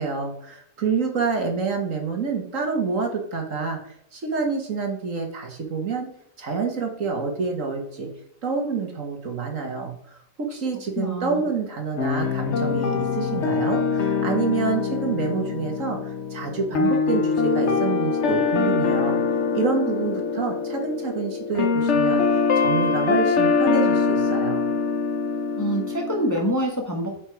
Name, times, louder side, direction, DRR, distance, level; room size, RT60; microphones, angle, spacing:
voice 1, 0.0-6.1 6.4-8.1 8.4-19.2 19.5-22.2 22.6-24.6, right 4 dB, 60° right, 3 dB, 1.9 m, -27 dB
voice 2, 11.0-11.4 25.6-27.2, equal, 15° left, 0 dB, 1.3 m, -26 dB
sound 1, 12.0-26.4, left 5 dB, 55° left, 1.1 m, -23 dB
8.4 x 5.0 x 4.8 m, 0.69 s
omnidirectional pair, 1.5 m